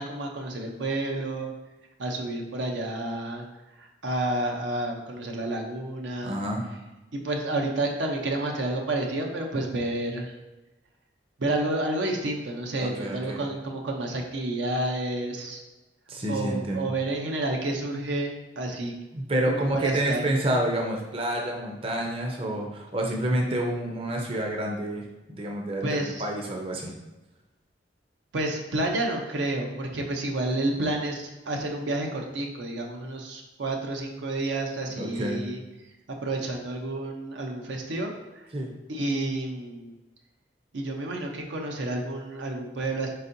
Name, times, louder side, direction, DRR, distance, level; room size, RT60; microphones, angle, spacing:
voice 1, 0.0-1.5 2.0-3.4 3.8-6.4 7.1-10.3 11.4-15.6 16.3-18.9 19.5-20.2 25.8-26.3 28.3-35.6 36.1-38.5 38.9-39.9 40.7-43.1, right 2 dB, 80° right, 2 dB, 0.6 m, -30 dB
voice 2, 6.2-6.6 12.8-13.4 16.1-16.9 19.1-26.9 34.9-35.4 38.5-38.7, right 1 dB, 30° right, 0 dB, 0.5 m, -29 dB
4.4 x 4.0 x 2.6 m, 1.1 s
head